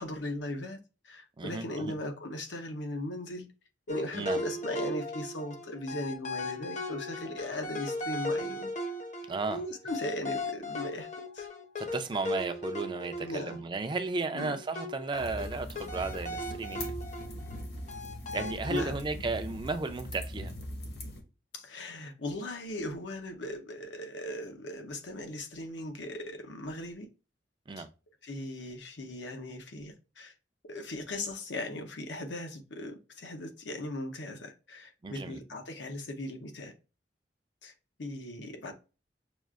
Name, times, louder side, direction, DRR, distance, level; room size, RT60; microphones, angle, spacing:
voice 1, 0.0-3.5 3.9-8.7 9.5-11.1 11.3-11.5 13.2-13.6 14.3-14.6 18.7-18.9 21.5-27.1 27.8-27.9 28.2-30.3 30.6-36.7 37.6-37.7 38.0-38.7, left 1 dB, 85° left, 0.8 m, -38 dB
voice 2, 1.4-1.9 4.1-4.4 9.3-9.6 11.8-16.9 18.3-20.5 27.7-27.9 35.0-35.4, right 3 dB, 25° right, 0.4 m, -34 dB
sound 1, 3.9-13.9 14.4-17.6 17.9-18.9, left 1 dB, 40° left, 0.7 m, -37 dB
sound 2, 15.1-21.2, equal, 60° left, 1.0 m, -41 dB
6.0 x 2.4 x 2.4 m
head